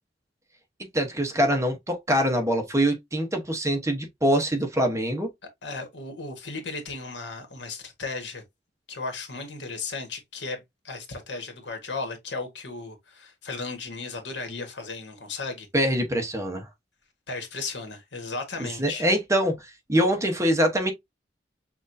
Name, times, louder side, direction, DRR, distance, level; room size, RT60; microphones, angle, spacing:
voice 1, 0.9-5.3 15.7-16.6 18.6-19.6 19.9-20.9, equal, 15° right, 0.9 m, -24 dB
voice 2, 5.6-8.4 8.9-15.7 17.3-19.1, left 3 dB, 80° left, 1.3 m, -35 dB
6.1 x 2.5 x 2.6 m
head